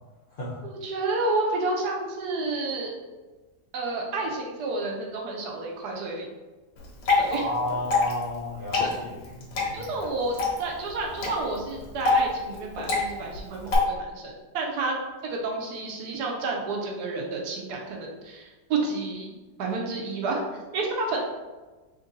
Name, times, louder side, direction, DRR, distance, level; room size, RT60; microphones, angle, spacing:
voice 1, 0.6-2.9 3.7-6.3 7.2-7.5 9.7-14.9 15.2-20.4 20.7-21.2, right 3 dB, 70° right, 0 dB, 1.2 m, -30 dB
Water / Drip, 6.8-13.8, left 4 dB, 85° left, 1.6 m, -28 dB
voice 2, 7.3-9.9, left 1 dB, 60° left, -6 dB, 0.5 m, -32 dB
3.5 x 2.6 x 3.9 m, 1.2 s
omnidirectional pair, 1.9 m